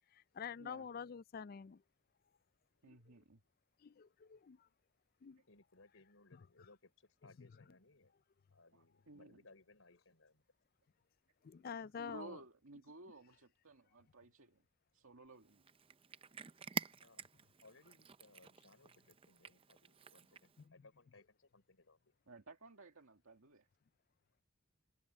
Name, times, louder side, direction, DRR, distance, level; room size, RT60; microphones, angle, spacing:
voice 1, 0.1-1.8 2.8-3.0 3.8-4.7 5.2-5.4 6.3-6.4 11.4-12.4 20.7-20.8, left 6 dB, 45° left, 0.3 m, -47 dB
voice 2, 2.8-3.4 8.7-9.4 12.0-14.6 14.9-15.6 22.3-23.7, right 2 dB, 75° right, 1.9 m, -56 dB
voice 3, 5.5-8.1 8.5-10.4 17.0-17.2 17.6-22.1, left 3 dB, 70° left, 4.5 m, -65 dB
Cat, 15.4-20.6, right 5 dB, 25° right, 0.5 m, -48 dB
head